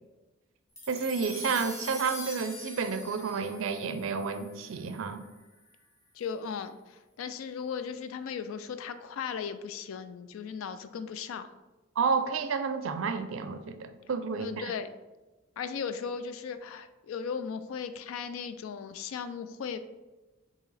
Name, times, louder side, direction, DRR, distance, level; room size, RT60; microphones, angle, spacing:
sound 1, 0.8-5.3, equal, 15° left, 0.8 m, -43 dB
voice 1, 0.9-5.2 12.0-14.7, right 5 dB, 75° right, 9 dB, 0.4 m, -31 dB
voice 2, 6.1-11.5 14.4-14.9 15.6-19.8, left 6 dB, 80° left, 11 dB, 0.3 m, -37 dB
4.6 x 2.8 x 3.2 m, 1.1 s
head